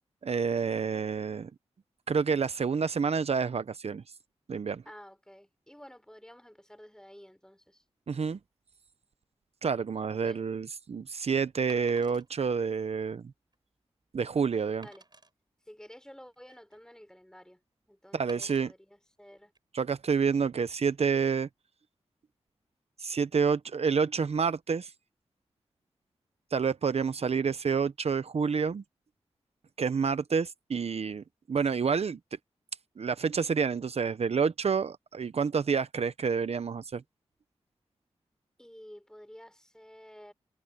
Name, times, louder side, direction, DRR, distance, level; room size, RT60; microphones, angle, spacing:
voice 1, 0.2-1.5 2.1-4.0 4.5-4.8 8.1-8.4 9.6-13.3 14.1-14.9 18.1-18.7 19.7-21.5 23.0-24.9 26.5-28.8 29.8-32.2 33.0-37.0, right 5 dB, 65° right, 0.8 m, -28 dB
voice 2, 4.9-7.8 10.2-10.4 14.8-15.0 15.7-17.6 17.9-19.5 38.6-40.3, equal, 5° left, 3.9 m, -51 dB
Wood, 10.1-10.3 11.7-12.3 12.9-13.0 13.5-13.6 14.8-15.3 16.1-16.9 18.3-18.6 19.4-19.6, right 3 dB, 40° right, 5.7 m, -54 dB
cardioid pair, 50°, 11 cm